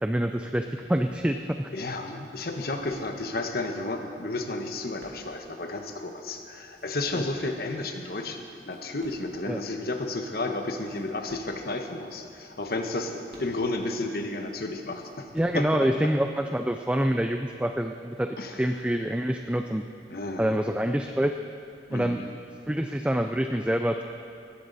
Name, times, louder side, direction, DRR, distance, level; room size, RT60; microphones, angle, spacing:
voice 1, 0.0-1.7 9.5-9.6 15.3-19.8 20.4-21.4 21.9-22.2 22.7-24.0, right 1 dB, 5° right, 6 dB, 0.4 m, -26 dB
sound 1, 0.9-1.5 2.4-3.5 4.4-5.6 6.4-7.8 8.3-9.4 9.9-10.0 10.7-12.0 12.7-13.9 14.8-16.0 16.8-17.1, equal, 60° right, 3.2 m, -52 dB
voice 2, 1.7-15.3 15.5-16.1 18.4-18.6 20.1-20.6 21.9-22.4, left 2 dB, 55° left, 5 dB, 1.2 m, -32 dB
19.0 x 14.0 x 4.1 m, 2.5 s
head